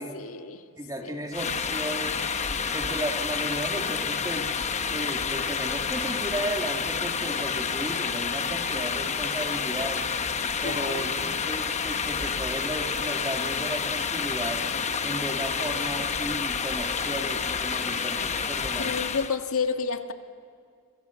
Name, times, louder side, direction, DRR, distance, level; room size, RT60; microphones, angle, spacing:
voice 1, 0.0-0.6 1.0-1.2 10.6-11.0 18.8-20.1, left 5 dB, 80° left, 6 dB, 1.7 m, -30 dB
voice 2, 0.8-2.3 2.7-4.5 4.9-10.1 10.6-14.6 15.0-18.9, right 1 dB, 15° right, 3 dB, 2.2 m, -34 dB
sound 1, 1.3-19.4, left 6 dB, 30° left, 1.0 m, -29 dB
29.0 x 26.0 x 7.1 m, 2.2 s
head